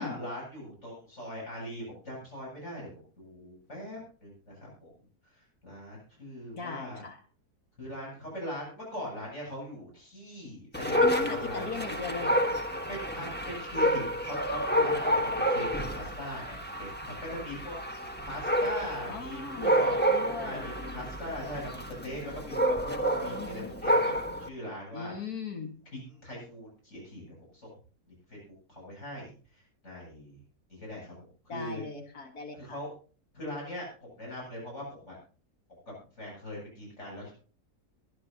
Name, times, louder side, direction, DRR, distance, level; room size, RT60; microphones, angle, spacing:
voice 1, 0.0-2.9 3.2-4.9 5.6-7.1 7.8-11.9 12.9-19.9 20.4-24.1 24.4-25.1 25.9-27.2 27.5-27.7 28.3-30.4 30.7-31.1 31.4-31.8 32.5-32.9 33.3-35.2 35.9-37.3, equal, 45° left, -4 dB, 8.5 m, -41 dB
voice 2, 6.6-7.2 11.0-12.6 19.1-20.7 23.3-23.7 24.9-25.7 31.5-32.8, left 4 dB, 75° left, 4 dB, 2.3 m, -38 dB
Dog, 10.7-24.5, equal, 5° left, 1.2 m, -29 dB
23.0 x 10.0 x 2.9 m, 0.38 s
omnidirectional pair, 1.6 m